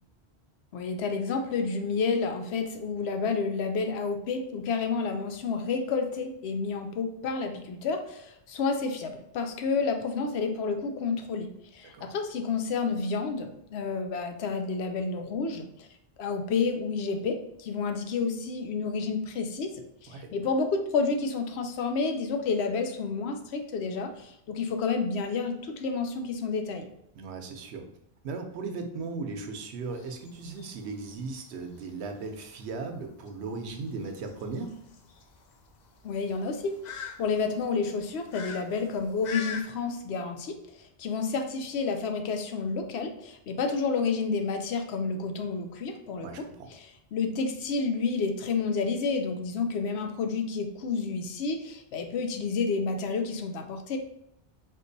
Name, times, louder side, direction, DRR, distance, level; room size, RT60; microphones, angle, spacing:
voice 1, 0.7-15.9 16.2-26.9 36.0-46.5 46.7-54.0, left 4 dB, 80° left, 5 dB, 0.8 m, -30 dB
voice 2, 27.1-27.9 28.2-34.8 46.2-46.7, right 4 dB, 90° right, 4 dB, 0.9 m, -37 dB
sound 1, 29.8-39.6, left 7 dB, 55° left, 0.5 m, -44 dB
4.4 x 2.4 x 2.6 m, 0.75 s
omnidirectional pair, 1.1 m